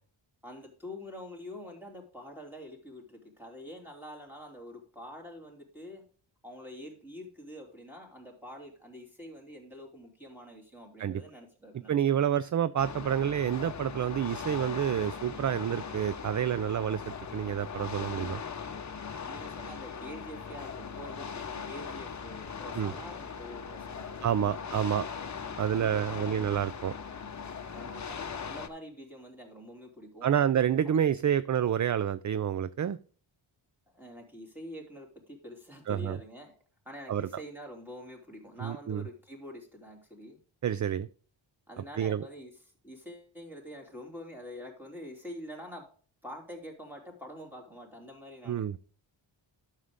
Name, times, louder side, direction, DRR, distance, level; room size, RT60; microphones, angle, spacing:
voice 1, 0.4-6.0 6.4-12.2 19.2-24.7 25.7-26.5 27.7-30.3 30.8-31.0 33.9-36.5 36.8-40.4 41.7-42.5 42.8-45.9 46.2-48.7, equal, 5° right, -1 dB, 3.3 m, -46 dB
voice 2, 11.9-18.4 22.8-22.9 24.2-25.1 25.6-26.9 30.2-33.0 35.9-36.2 37.1-37.3 38.6-39.0 40.6-41.1 42.0-42.2 48.5-48.8, right 9 dB, 40° right, 16 dB, 0.4 m, -28 dB
sound 1, 12.8-28.7, left 6 dB, 35° left, 0.9 m, -40 dB
11.0 x 6.6 x 3.6 m, 0.42 s
wide cardioid pair, 100°, 48 cm